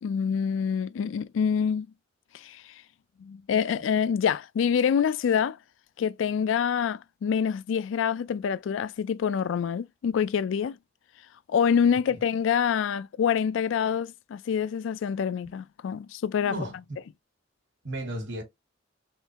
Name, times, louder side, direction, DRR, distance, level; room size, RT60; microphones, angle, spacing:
voice 1, 0.0-1.9 2.3-2.6 3.2-5.6 6.0-10.8 11.5-16.5, left 7 dB, 75° left, 0.3 m, -26 dB
voice 2, 16.4-17.0 17.8-18.4, right 1 dB, 65° right, 1.3 m, -35 dB
3.7 x 3.1 x 2.8 m
head